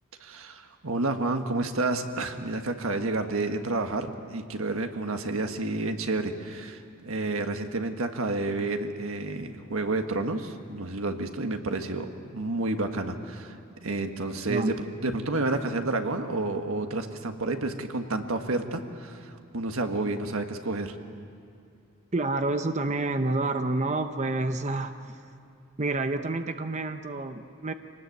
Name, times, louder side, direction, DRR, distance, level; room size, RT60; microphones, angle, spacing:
voice 1, 0.2-13.6 13.8-14.7 15.0-20.9, right 2 dB, 80° right, 6 dB, 1.5 m, -30 dB
voice 2, 22.1-25.2 25.8-27.7, right 2 dB, 35° right, 8 dB, 0.8 m, -29 dB
25.5 x 19.0 x 8.1 m, 2.5 s
head